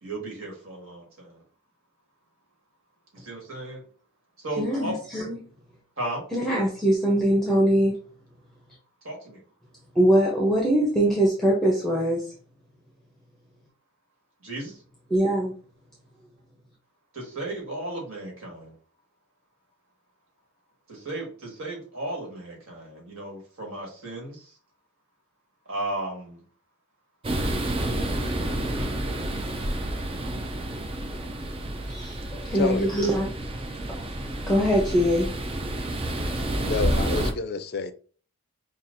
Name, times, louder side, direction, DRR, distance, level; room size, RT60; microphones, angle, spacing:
voice 1, 0.0-1.4 3.1-3.8 4.4-5.0 6.0-6.2 9.0-9.4 14.4-14.8 17.1-18.7 20.9-24.5 25.7-26.4 28.8-29.0, right 1 dB, 65° right, 1.8 m, -35 dB
voice 2, 4.6-5.4 6.3-7.9 9.9-12.2 15.1-15.5 31.9-33.3 33.9-34.0 34.5-35.3, right 1 dB, ahead, 0.8 m, -22 dB
sound 1, 27.2-37.3, right 1 dB, 25° right, 0.4 m, -29 dB
voice 3, 32.5-32.9 36.6-37.9, left 4 dB, 45° left, 0.4 m, -28 dB
5.6 x 2.4 x 2.6 m
head